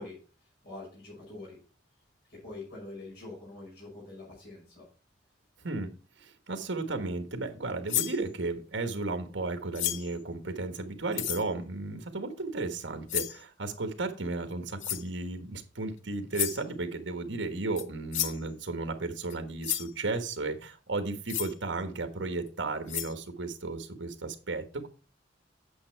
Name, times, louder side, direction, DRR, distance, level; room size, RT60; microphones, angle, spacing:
voice 1, 0.0-1.6 2.3-4.9, left 2 dB, 60° left, -3 dB, 5.4 m, -45 dB
voice 2, 6.2-24.9, right 3 dB, 70° right, 7 dB, 1.3 m, -34 dB
sound 1, 7.9-8.2 9.7-10.2 11.1-11.5 13.1-13.4 14.8-15.1 16.3-16.6 17.8-17.9 18.1-18.4 19.3-19.4 19.6-19.9 21.3-21.5 22.5-22.6 22.9-23.1, left 12 dB, 85° left, 0.7 m, -32 dB
8.6 x 6.6 x 4.5 m, 0.35 s
head